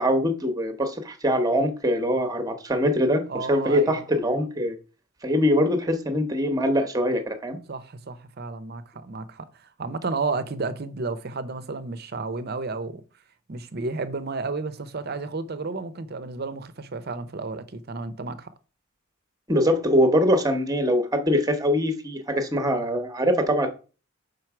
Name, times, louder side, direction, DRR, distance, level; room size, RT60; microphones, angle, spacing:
voice 1, 0.0-4.7 5.2-7.6 19.5-23.7, equal, 15° right, 0.9 m, -23 dB
voice 2, 3.3-4.0 7.7-9.5 9.8-13.0 13.5-18.5, right 3 dB, 50° right, 0.7 m, -32 dB
5.2 x 4.5 x 5.9 m
head